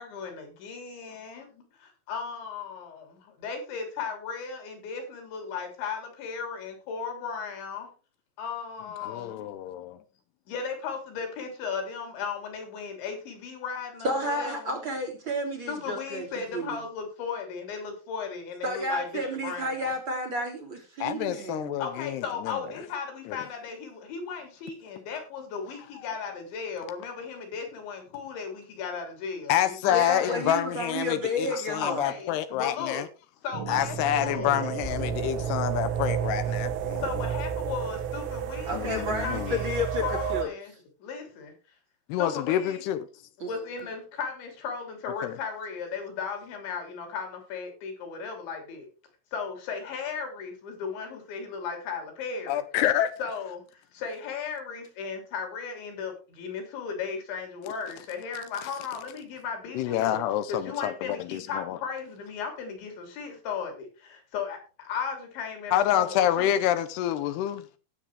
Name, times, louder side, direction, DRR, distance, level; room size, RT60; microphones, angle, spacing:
voice 1, 0.0-7.9 8.4-9.5 10.5-14.8 15.7-19.9 21.8-30.5 31.5-33.1 33.4-34.6 37.0-39.7 40.0-41.5 42.2-42.9 43.4-48.9 49.3-52.6 53.2-60.2 60.5-66.5, left 6 dB, 65° left, 5.4 m, -36 dB
voice 2, 9.0-10.0 21.0-22.5 29.5-33.0 33.7-37.0 38.7-39.5 42.1-43.1 45.2-45.3 52.5-53.1 59.8-60.9 61.3-61.8 65.7-67.6, left 11 dB, 90° left, 2.3 m, -27 dB
voice 3, 14.0-16.3 16.5-16.8 18.6-21.8 29.8-32.1 38.7-40.5 43.4-43.5, left 1 dB, 35° right, 2.0 m, -31 dB
sound 1, 33.5-40.4, right 8 dB, 75° right, 3.8 m, -31 dB
19.0 x 7.5 x 3.4 m
omnidirectional pair, 5.8 m